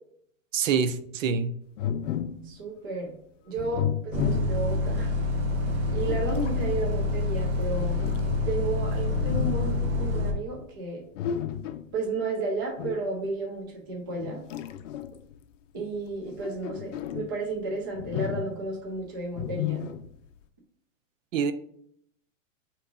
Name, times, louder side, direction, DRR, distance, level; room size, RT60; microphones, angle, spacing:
voice 1, 0.5-1.5 21.3-21.5, right 6 dB, 75° right, 11 dB, 0.6 m, -25 dB
sound 1, 1.8-2.5 3.6-4.9 5.7-6.6 7.8-8.7 9.1-9.9 11.1-11.9 12.8-13.1 14.2-15.3 16.2-17.4 17.9-18.8 19.4-20.2, left 10 dB, 65° left, 0.5 m, -33 dB
voice 2, 2.4-3.1 3.5-5.1 5.9-8.0 8.5-11.0 11.9-14.4 15.7-19.9, right 3 dB, 20° right, -1 dB, 0.3 m, -32 dB
Bus, 4.1-10.3, left 2 dB, 45° right, 1.0 m, -27 dB
4.6 x 2.9 x 3.6 m, 0.67 s
supercardioid pair, 165°, 39 cm